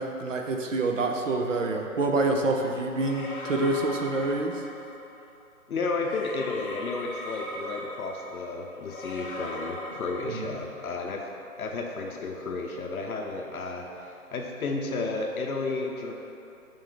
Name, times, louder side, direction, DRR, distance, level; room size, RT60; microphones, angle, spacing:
voice 1, 0.0-4.6 10.3-10.5, right 2 dB, 60° right, 3 dB, 0.7 m, -27 dB
sound 1, 2.9-5.2 6.0-10.9, left 1 dB, 35° left, 0.9 m, -39 dB
voice 2, 5.7-11.2 11.6-16.1, left 3 dB, 75° left, 1 dB, 0.7 m, -32 dB
5.3 x 5.0 x 3.8 m, 2.8 s
hypercardioid pair, 170°, 44 cm